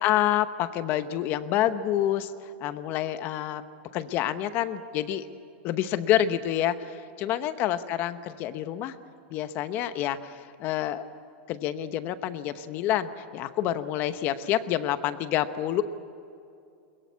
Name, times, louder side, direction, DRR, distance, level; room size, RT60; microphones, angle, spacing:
voice 1, 0.0-2.3 2.6-3.6 3.9-5.3 5.6-8.9 9.3-11.1 11.5-15.8, left 11 dB, 35° left, 12 dB, 0.9 m, -28 dB
22.0 x 21.5 x 8.3 m, 2.5 s
supercardioid pair, 160°, 6 cm